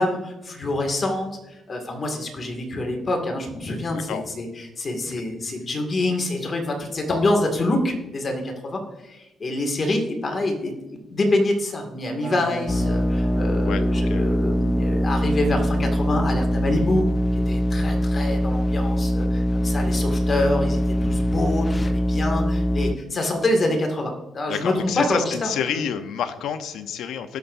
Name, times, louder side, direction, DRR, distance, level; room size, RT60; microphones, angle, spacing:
voice 1, 0.0-17.1 17.5-25.8, left 2 dB, 40° left, 3 dB, 2.2 m, -26 dB
voice 2, 3.9-4.3 5.1-5.2 13.6-14.4 24.5-27.4, left 8 dB, 80° left, 9 dB, 0.8 m, -29 dB
sound 1, 12.2-23.2, equal, 40° right, 1.8 m, -34 dB
sound 2, 12.7-22.9, equal, 20° left, 0.6 m, -23 dB
19.0 x 6.8 x 2.7 m, 1.0 s
cardioid pair, 90°, 0 cm